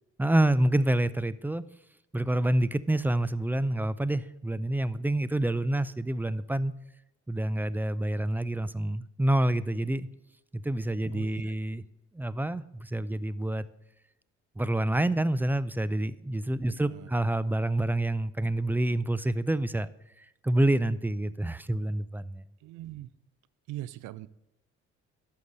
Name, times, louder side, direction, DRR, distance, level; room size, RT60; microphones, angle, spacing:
voice 1, 0.2-1.6 2.1-6.7 7.3-10.1 10.5-11.8 12.1-13.7 14.6-19.9 20.2-22.4, right 1 dB, 5° right, 0.4 m, -27 dB
voice 2, 11.1-11.5 16.7-17.1 22.6-23.1 23.7-24.3, right 15 dB, 80° right, 0.5 m, -41 dB
11.0 x 6.5 x 4.0 m
supercardioid pair, 80°, 30 cm